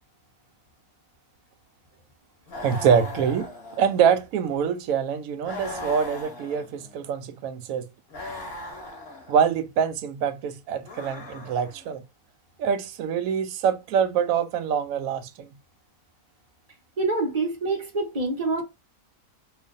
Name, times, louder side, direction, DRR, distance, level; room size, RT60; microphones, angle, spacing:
sound 1, 2.5-4.2 5.4-7.0 8.1-9.5 10.8-11.9, left 2 dB, 40° left, 1.5 m, -38 dB
voice 1, 2.6-3.5 3.8-7.9 9.3-12.0 12.6-15.5, right 7 dB, 75° right, 1.0 m, -25 dB
voice 2, 17.0-18.6, right 3 dB, 30° right, 0.9 m, -26 dB
2.8 x 2.5 x 3.7 m
omnidirectional pair, 1.6 m